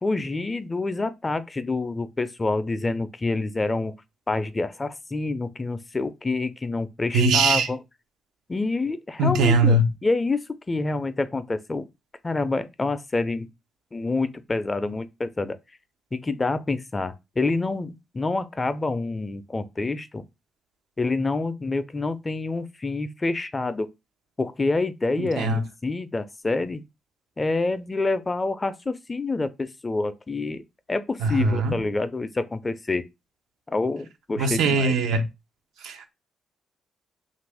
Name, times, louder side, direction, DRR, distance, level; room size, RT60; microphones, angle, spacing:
voice 1, 0.0-3.9 4.3-7.8 8.5-10.4 10.7-11.9 12.2-13.5 13.9-15.6 16.1-20.2 21.0-23.9 24.4-26.8 27.4-30.6 30.9-33.1 33.7-34.9, left 3 dB, 30° left, 0.4 m, -27 dB
voice 2, 7.1-7.7 9.2-9.8 25.2-25.6 31.2-31.7 34.4-35.2 35.8-36.1, right 2 dB, 85° right, 0.6 m, -21 dB
2.9 x 2.5 x 3.4 m
supercardioid pair, 65°, 0 cm